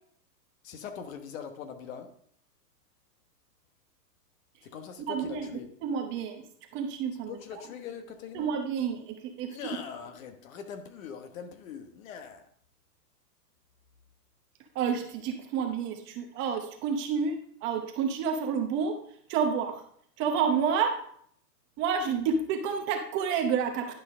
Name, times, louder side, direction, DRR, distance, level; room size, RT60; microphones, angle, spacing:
voice 1, 0.6-2.1 4.6-5.7 7.3-8.5 9.5-12.5, left 7 dB, 55° left, 8 dB, 1.2 m, -42 dB
voice 2, 5.1-5.5 5.8-6.4 6.7-7.6 8.3-9.6 14.7-19.0 19.3-19.8 20.2-21.0 21.8-23.9, right 6 dB, 25° right, 4 dB, 0.8 m, -29 dB
10.5 x 5.6 x 3.7 m, 0.64 s
hypercardioid pair, 140°, 48 cm